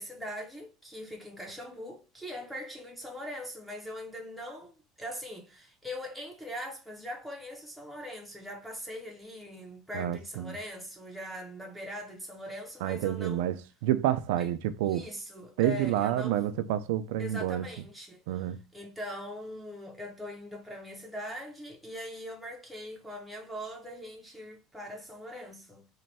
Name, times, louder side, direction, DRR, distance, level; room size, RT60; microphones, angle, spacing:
voice 1, 0.0-13.5 14.4-14.5 14.8-16.4 17.2-25.9, left 1 dB, ahead, 0.6 m, -41 dB
voice 2, 9.9-10.5 12.8-15.1 15.6-17.7 18.3-18.6, right 12 dB, 85° right, 0.3 m, -29 dB
3.1 x 2.2 x 4.0 m
cardioid pair, 160°, 0 cm